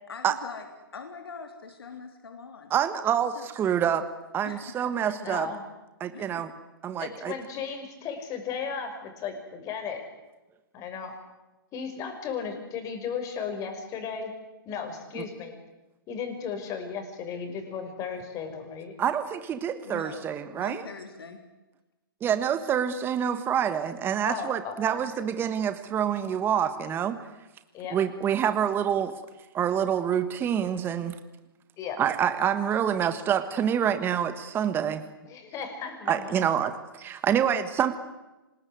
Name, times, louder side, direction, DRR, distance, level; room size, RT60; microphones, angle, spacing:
voice 1, 0.1-0.7 0.9-2.7 3.3-3.5 4.4-4.9 6.1-6.5 19.8-21.4, left 5 dB, 85° left, 6 dB, 3.4 m, -42 dB
voice 2, 2.7-4.1 4.3-5.5 6.0-6.5 6.8-7.3 15.1-15.2 19.0-20.8 22.2-27.2 27.9-29.1 29.5-31.2 32.0-35.0 36.1-36.7 37.0-38.0, right 9 dB, 20° right, 10 dB, 1.4 m, -27 dB
voice 3, 5.0-5.7 7.0-10.0 10.7-11.2 11.7-14.3 14.7-15.6 16.1-18.9 24.3-25.0 27.7-28.0 31.8-32.0 35.3-36.3, left 6 dB, 25° left, 6 dB, 5.7 m, -35 dB
25.5 x 21.0 x 9.5 m, 1.1 s
hypercardioid pair, 140°, 12 cm